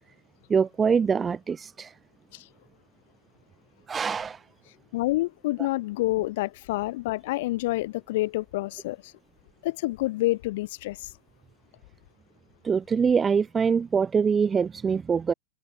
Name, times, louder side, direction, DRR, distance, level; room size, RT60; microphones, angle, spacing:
voice 1, 0.5-2.0 3.9-4.5 12.6-15.3, right 6 dB, 20° right, 0.5 m, -24 dB
voice 2, 4.9-9.1 9.6-11.1, left 18 dB, 55° left, 0.5 m, -28 dB
open air
figure-of-eight pair, 100°, 0 cm